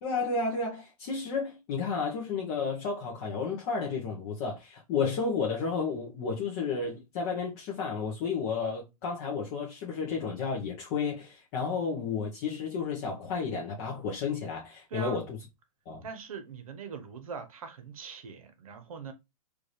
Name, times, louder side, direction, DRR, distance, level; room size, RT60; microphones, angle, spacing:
voice 1, 0.0-15.3 15.9-16.0, left 5 dB, 30° left, 0.9 m, -32 dB
voice 2, 14.9-15.2 16.0-19.1, right 6 dB, 70° right, 1.1 m, -42 dB
4.7 x 2.6 x 3.2 m
hypercardioid pair, 175°, 19 cm